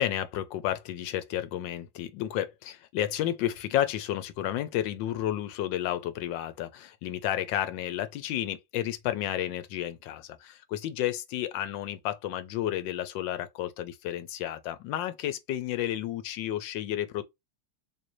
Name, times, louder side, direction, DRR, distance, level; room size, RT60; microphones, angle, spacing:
voice 1, 0.0-17.2, left 12 dB, 85° left, 1.3 m, -31 dB
3.8 x 2.6 x 2.8 m
omnidirectional pair, 2.0 m